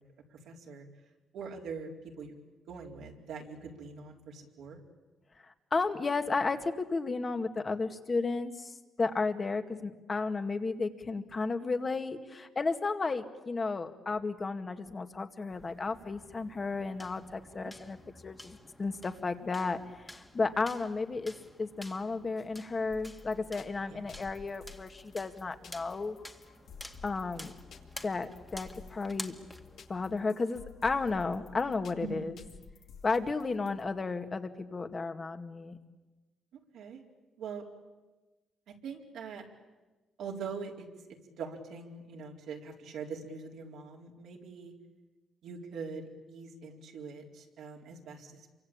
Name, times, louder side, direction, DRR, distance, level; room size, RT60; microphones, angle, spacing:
voice 1, 0.3-0.9 1.3-2.4 2.7-4.8 17.6-17.7 23.9-24.1 32.0-32.3 33.4-33.7 36.7-37.0 37.4-37.6 38.8-39.5 40.2-40.9 41.3-44.7 45.4-46.0 46.3-48.5, right 5 dB, 80° right, -1 dB, 4.3 m, -43 dB
voice 2, 5.4-18.0 18.2-19.8 20.1-21.3 21.6-26.2 27.0-27.5 28.0-29.4 29.9-32.3 33.0-35.7, left 3 dB, 30° left, 8 dB, 2.1 m, -33 dB
sound 1, 15.5-30.3, left 1 dB, 10° left, 2.1 m, -50 dB
sound 2, 22.9-33.9, left 6 dB, 65° left, 2.4 m, -53 dB
27.5 x 24.5 x 8.9 m, 1.2 s
cardioid pair, 90°, 0 cm